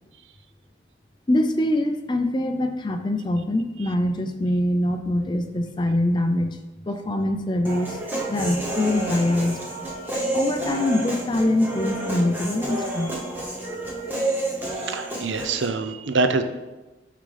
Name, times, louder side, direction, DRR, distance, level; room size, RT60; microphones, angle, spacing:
voice 1, 1.3-6.6 6.9-9.7 10.3-13.3, left 1 dB, 25° left, 6 dB, 0.4 m, -24 dB
Human voice, 7.6-15.7, right 1 dB, 10° right, 0.8 m, -29 dB
voice 2, 14.7-16.4, right 3 dB, 85° right, 9 dB, 0.5 m, -25 dB
9.9 x 3.7 x 3.3 m, 1.1 s
head